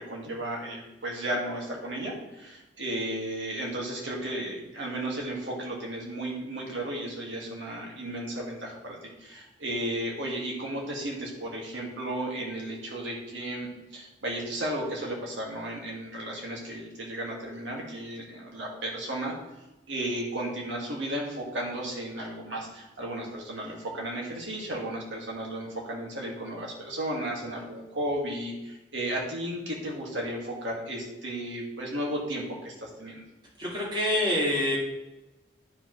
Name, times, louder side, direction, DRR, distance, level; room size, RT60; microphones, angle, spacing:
voice 1, 0.0-19.3 19.9-33.3, right 1 dB, 85° right, -2 dB, 1.9 m, -34 dB
voice 2, 33.6-34.8, left 1 dB, 25° right, -5 dB, 2.4 m, -26 dB
13.0 x 5.0 x 3.1 m, 1.0 s
head